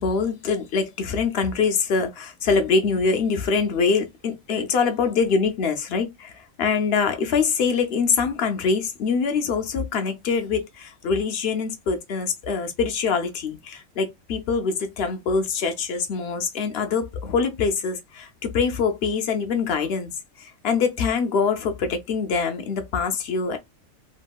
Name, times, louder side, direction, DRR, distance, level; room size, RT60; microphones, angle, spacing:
voice 1, 0.0-20.1 20.4-23.6, left 5 dB, 60° left, 0.7 m, -24 dB
2.9 x 2.6 x 2.3 m
omnidirectional pair, 1.5 m